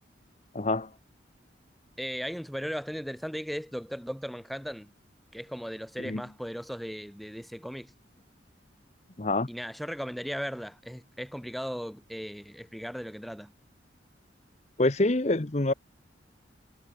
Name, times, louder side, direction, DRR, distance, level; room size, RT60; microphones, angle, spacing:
voice 1, 0.5-0.9 6.0-6.2 9.2-9.5 14.8-15.7, left 2 dB, 35° left, 1.0 m, -26 dB
voice 2, 2.0-4.9 5.3-7.9 9.5-13.5, equal, ahead, 5.1 m, -37 dB
head